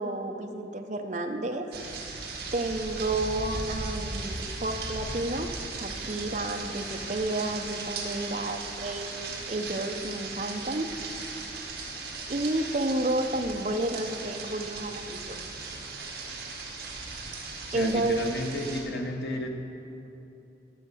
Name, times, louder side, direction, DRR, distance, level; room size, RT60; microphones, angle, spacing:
voice 1, 0.0-1.7 2.5-9.1 9.5-10.9 12.3-15.4 17.7-18.2, right 2 dB, 40° right, 5 dB, 0.7 m, -31 dB
sound 1, 1.7-18.8, right 3 dB, 60° right, 1.7 m, -37 dB
voice 2, 17.7-19.5, left 1 dB, 65° left, 2 dB, 1.1 m, -32 dB
13.5 x 6.7 x 6.3 m, 2.8 s
head